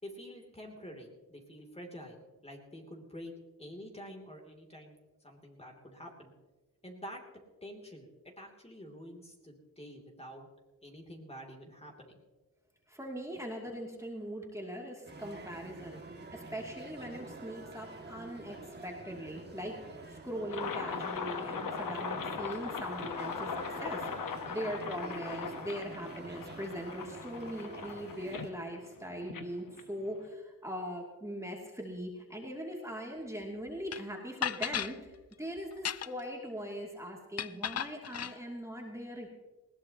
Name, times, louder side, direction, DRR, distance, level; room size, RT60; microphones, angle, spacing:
voice 1, 0.0-3.3 3.6-4.9 5.2-6.3 6.8-7.2 7.6-8.1 8.4-10.5 10.8-12.1, equal, 15° left, 1 dB, 3.0 m, -48 dB
voice 2, 12.9-19.8 20.1-39.3, equal, 10° right, -1 dB, 2.7 m, -41 dB
sound 1, 15.0-28.5, right 3 dB, 30° right, 2.2 m, -47 dB
sound 2, 20.5-30.3, left 6 dB, 65° left, 1.3 m, -40 dB
sound 3, 33.9-34.0 34.4-34.9 35.7-36.3 37.4-38.3, left 9 dB, 45° left, 0.5 m, -35 dB
20.0 x 17.5 x 3.0 m, 1.2 s
cardioid pair, 80°, 35 cm